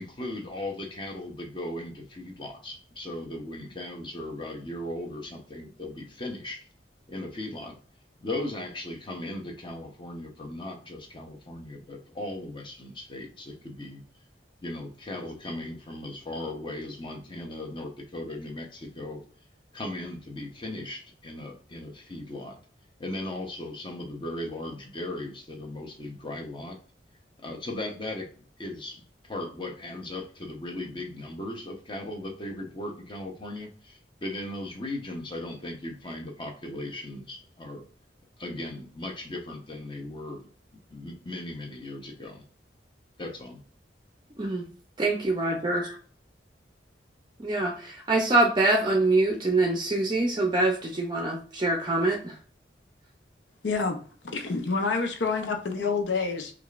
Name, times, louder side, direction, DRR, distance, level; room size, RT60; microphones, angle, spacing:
voice 1, 0.0-6.7 7.1-7.8 8.2-14.0 14.6-19.2 19.7-22.6 23.0-26.8 27.4-28.3 28.6-37.8 38.4-40.5 40.9-42.5 43.2-43.6, left 1 dB, 30° left, 2 dB, 0.8 m, -37 dB
voice 2, 45.0-45.8 47.4-52.4, right 2 dB, 25° right, 0 dB, 0.5 m, -24 dB
voice 3, 53.6-54.0 54.2-56.5, left 4 dB, 80° left, 5 dB, 0.7 m, -28 dB
4.9 x 2.4 x 2.4 m, 0.43 s
head